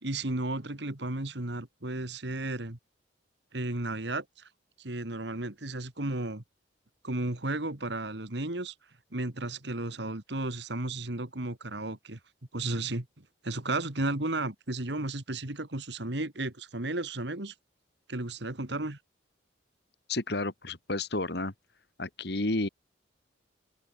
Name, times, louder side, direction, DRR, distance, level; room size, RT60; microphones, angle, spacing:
voice 1, 0.0-2.8 3.5-4.5 4.8-6.4 7.0-8.7 9.1-12.2 12.5-13.1 13.4-17.5 18.1-19.0, right 2 dB, 60° right, 2.2 m, -33 dB
voice 2, 20.1-21.5 22.0-22.7, left 2 dB, 55° left, 1.9 m, -31 dB
open air
head